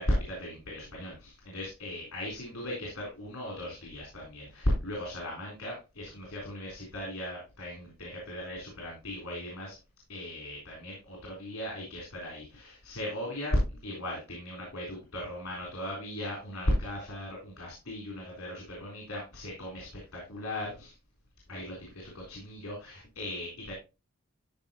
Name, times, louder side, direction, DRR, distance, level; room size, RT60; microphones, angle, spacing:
voice 1, 0.0-9.8 10.1-20.9 21.5-23.7, left 1 dB, 75° left, -2 dB, 3.9 m, -36 dB
13.0 x 4.9 x 3.0 m, 0.28 s
head